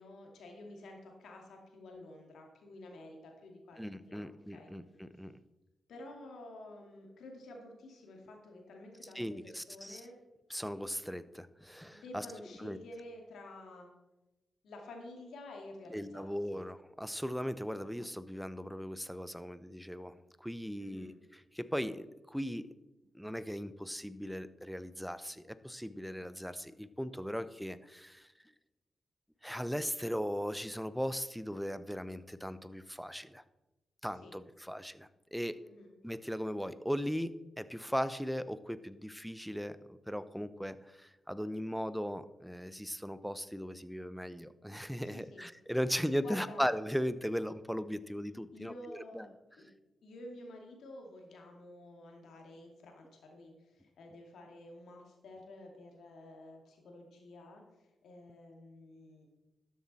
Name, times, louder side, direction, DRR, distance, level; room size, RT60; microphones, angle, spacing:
voice 1, 0.0-4.2 4.5-4.8 5.9-10.1 11.9-13.9 14.6-16.6 20.8-21.1 34.2-34.3 35.6-35.9 45.0-45.4 46.2-46.6 48.5-49.3 49.6-49.7 50.0-57.6 58.0-59.3, left 1 dB, 75° left, 1 dB, 2.4 m, -50 dB
voice 2, 3.8-5.3 9.1-10.0 10.5-12.3 12.6-12.8 15.9-22.7 23.1-28.3 29.4-33.4 34.0-35.6 36.0-49.3, equal, ahead, 14 dB, 0.8 m, -38 dB
12.5 x 7.4 x 4.2 m, 1.0 s
supercardioid pair, 40°, 0 cm